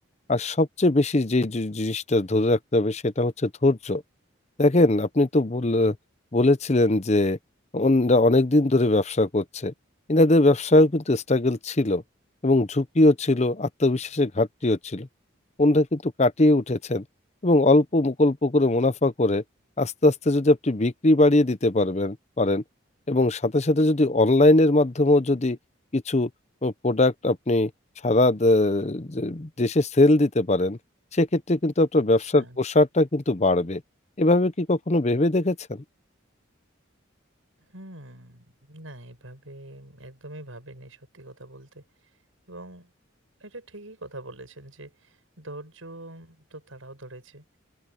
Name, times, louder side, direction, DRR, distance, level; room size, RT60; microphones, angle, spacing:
voice 1, 0.3-4.0 4.6-5.9 6.3-7.4 7.7-9.7 10.1-12.0 12.4-15.1 15.6-17.0 17.4-19.4 19.8-22.6 23.1-25.6 25.9-26.3 26.6-27.7 28.0-30.8 31.1-33.8 34.2-35.8, left 2 dB, 35° left, 0.8 m, -21 dB
voice 2, 32.2-32.6 37.6-42.2 42.5-42.9 43.4-47.5, right 1 dB, 85° right, 7.6 m, -44 dB
open air
head